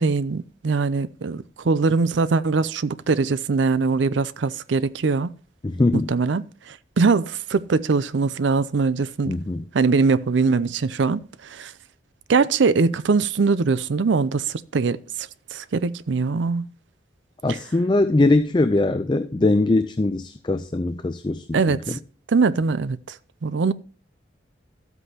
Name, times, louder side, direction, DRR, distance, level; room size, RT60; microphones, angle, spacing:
voice 1, 0.0-5.3 5.9-9.3 9.7-11.7 12.3-16.7 17.5-17.6 21.5-22.0 22.3-23.2 23.4-23.7, right 4 dB, 75° right, 0.5 m, -22 dB
voice 2, 5.6-6.1 9.3-9.6 17.4-22.0, left 2 dB, 25° left, 0.4 m, -21 dB
13.0 x 8.1 x 2.9 m
head